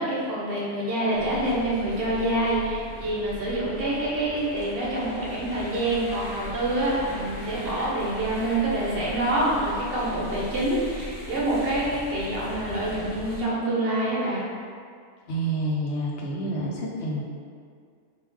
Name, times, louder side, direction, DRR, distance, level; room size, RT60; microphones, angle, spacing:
voice 1, 0.0-14.5, right 1 dB, 60° right, -6 dB, 1.0 m, -26 dB
sound 1, 1.1-13.4, equal, 55° left, 1.1 m, -40 dB
voice 2, 15.3-17.2, right 1 dB, 75° left, -3 dB, 1.0 m, -28 dB
3.6 x 2.7 x 3.1 m, 2.1 s
omnidirectional pair, 1.2 m